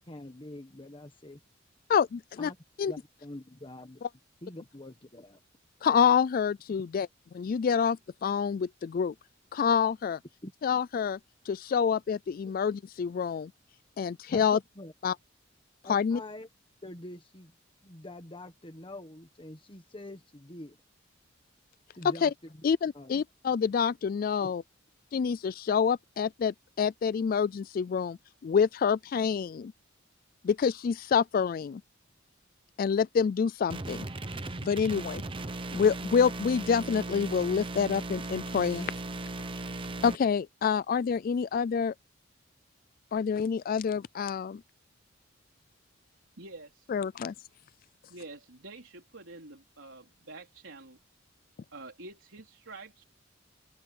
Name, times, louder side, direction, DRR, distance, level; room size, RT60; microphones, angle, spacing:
voice 1, 0.0-1.4 2.4-2.6 2.8-4.0 4.4-5.4 10.4-10.5 14.3-14.9 15.8-16.5 16.8-17.5 17.8-20.8 22.0-22.6 22.9-23.2 24.4-24.5, left 1 dB, 25° left, 1.4 m, -45 dB
voice 2, 1.9-2.5 2.8-2.9 5.8-7.1 7.3-9.1 9.5-10.2 10.6-11.2 11.5-13.5 14.0-14.6 15.0-15.1 15.9-16.2 22.2-22.3 22.6-24.6 25.1-28.2 28.4-29.7 30.4-31.8 32.8-34.1 34.6-35.2 35.7-38.9 40.0-41.9 43.1-44.6 46.9-47.3, left 6 dB, 45° left, 0.3 m, -27 dB
sound 1, 33.7-40.2, right 2 dB, 25° right, 0.9 m, -37 dB
voice 3, 46.4-46.9 48.1-51.0 51.7-53.0, right 2 dB, 75° right, 4.1 m, -47 dB
open air
head